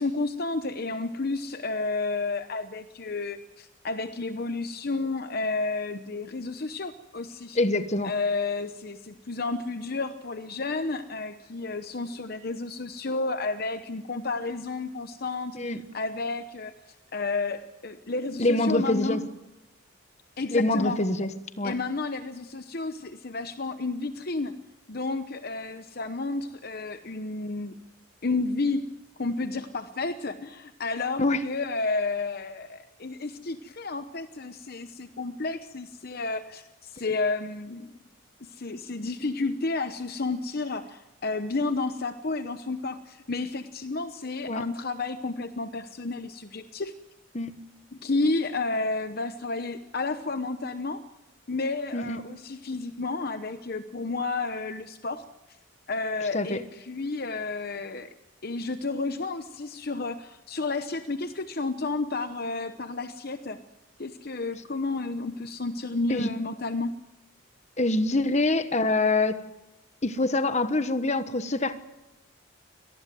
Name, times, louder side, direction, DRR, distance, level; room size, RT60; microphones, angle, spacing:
voice 1, 0.0-7.6 8.0-16.7 17.1-19.3 20.4-21.0 21.6-24.6 24.9-27.7 28.2-37.9 38.5-46.9 48.0-51.1 51.5-55.3 55.9-58.1 58.4-63.6 64.0-66.9, left 3 dB, 50° left, 10 dB, 0.9 m, -31 dB
voice 2, 7.5-8.1 15.5-15.8 18.4-19.2 20.5-21.3 21.6-21.7 31.2-31.4 44.5-44.6 47.3-47.5 51.9-52.2 56.3-56.6 66.1-66.3 67.8-69.4 70.0-71.7, left 2 dB, 35° left, 11 dB, 1.2 m, -25 dB
24.5 x 19.0 x 7.7 m, 1.0 s
head